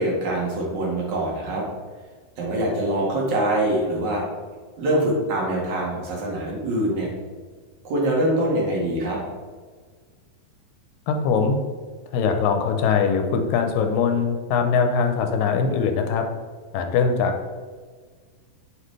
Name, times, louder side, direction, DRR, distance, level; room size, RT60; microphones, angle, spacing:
voice 1, 0.0-1.6 2.4-4.2 4.8-7.1 7.8-9.2, right 1 dB, 60° right, -3 dB, 3.0 m, -24 dB
voice 2, 11.1-11.6 12.1-16.3 16.7-17.3, left 5 dB, 80° left, 5 dB, 2.3 m, -21 dB
8.6 x 7.5 x 3.3 m, 1.5 s
omnidirectional pair, 4.1 m